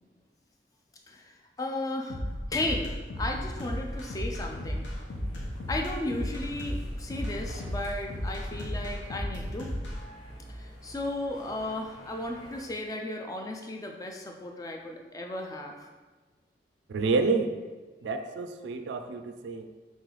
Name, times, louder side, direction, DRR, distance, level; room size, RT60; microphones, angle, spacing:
voice 1, 1.1-2.2 2.5-2.9 3.2-4.9 5.7-9.7 10.5-15.9, left 1 dB, 20° left, 2 dB, 0.3 m, -35 dB
sound 1, 2.1-10.0, equal, 85° left, 0.7 m, -34 dB
sound 2, 3.1-12.6, right 1 dB, ahead, 0.9 m, -50 dB
voice 2, 16.9-17.5 18.0-19.7, right 4 dB, 80° right, 7 dB, 0.3 m, -28 dB
3.1 x 3.1 x 3.8 m, 1.3 s
head